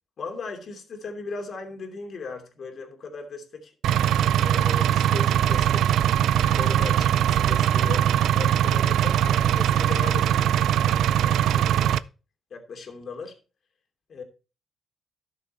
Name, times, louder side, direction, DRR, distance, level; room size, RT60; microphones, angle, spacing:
voice 1, 0.2-3.7 4.4-6.0 6.5-10.4 10.8-12.0 12.5-13.3 14.1-14.2, left 4 dB, 55° left, 2.8 m, -37 dB
Engine, 3.8-12.0, right 11 dB, 80° right, 0.4 m, -21 dB
12.5 x 6.8 x 4.3 m
cardioid pair, 90°, 0 cm